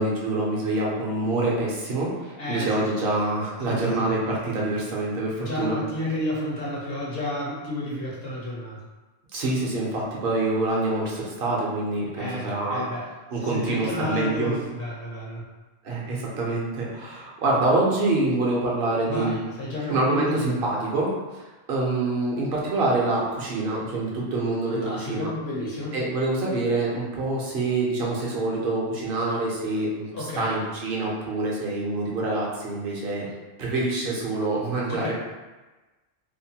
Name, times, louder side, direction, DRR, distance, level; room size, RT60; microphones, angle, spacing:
voice 1, 0.0-5.8 9.3-12.8 13.3-14.6 15.8-19.3 19.9-25.3 25.9-33.3 33.6-35.1, right 2 dB, 55° right, -4 dB, 0.7 m, -26 dB
voice 2, 2.4-2.7 3.7-4.1 5.4-8.8 12.2-13.0 13.4-15.4 19.1-20.6 24.7-26.0 30.1-30.6 34.9-35.1, left 1 dB, 55° left, -5 dB, 0.9 m, -31 dB
2.7 x 2.2 x 2.7 m, 1.2 s
omnidirectional pair, 1.3 m